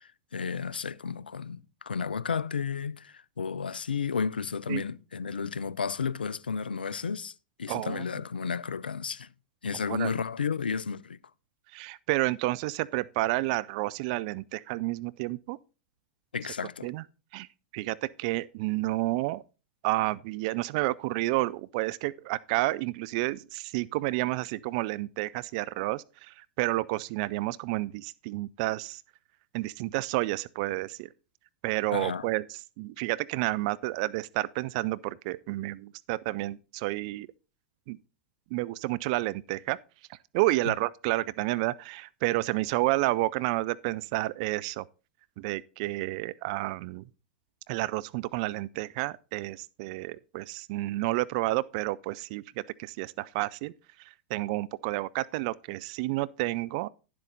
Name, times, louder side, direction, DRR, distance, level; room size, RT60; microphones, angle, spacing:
voice 1, 0.0-7.3 7.6-9.3 9.6-11.2 16.3-16.9 31.9-32.3 40.6-40.7, left 6 dB, 85° left, 0.4 m, -32 dB
voice 2, 7.7-8.0 9.9-10.1 11.7-15.6 16.8-17.0 17.3-17.5 17.7-19.4 19.8-29.0 29.5-31.1 31.6-32.4 32.8-37.3 37.9-38.0 38.5-39.8 40.1-44.8 45.4-47.0 47.7-53.7 54.3-56.9, right 19 dB, 50° right, 0.4 m, -30 dB
11.0 x 7.6 x 4.0 m
figure-of-eight pair, 95°, 5 cm